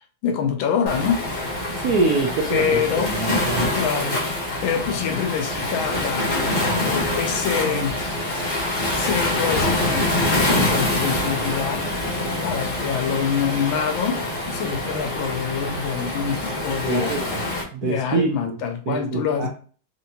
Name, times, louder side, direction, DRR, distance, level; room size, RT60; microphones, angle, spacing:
voice 1, 0.2-1.2 2.5-3.2 3.7-4.2 4.6-8.0 8.9-11.9 12.4-17.1 17.8-19.5, left 7 dB, 70° left, 1.3 m, -25 dB
Waves surf, 0.9-17.6, left 1 dB, 35° left, 1.0 m, -25 dB
voice 2, 1.8-2.8 3.1-3.6 16.9-17.4 17.7-18.6 18.9-19.5, right 3 dB, 75° right, 0.8 m, -24 dB
4.5 x 2.7 x 2.7 m
omnidirectional pair, 2.4 m